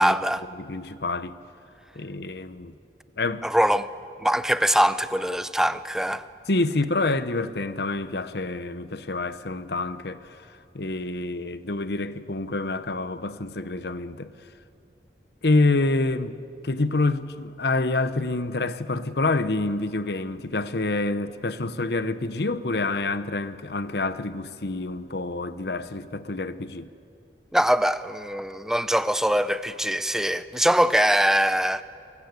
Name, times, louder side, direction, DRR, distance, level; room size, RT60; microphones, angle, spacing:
voice 1, 0.0-0.4 3.4-3.9 4.2-6.2 27.5-31.8, equal, 5° right, 0.5 m, -22 dB
voice 2, 0.5-1.4 1.9-2.8 3.2-3.5 6.5-14.3 15.4-26.9, left 2 dB, 70° left, 1.0 m, -27 dB
23.5 x 23.5 x 8.2 m
head